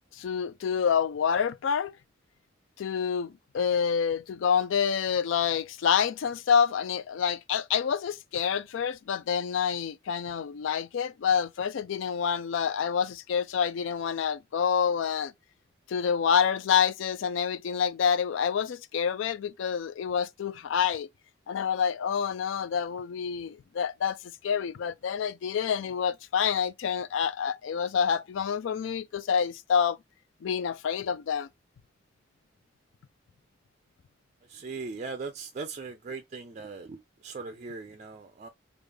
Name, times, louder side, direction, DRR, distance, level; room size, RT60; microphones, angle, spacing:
voice 1, 0.2-1.9 2.8-15.3 15.9-21.1 21.5-24.2 24.4-30.0 30.4-31.5, left 7 dB, 80° left, 0.3 m, -27 dB
voice 2, 34.5-38.5, right 4 dB, 35° right, 0.3 m, -39 dB
3.3 x 2.4 x 3.4 m
head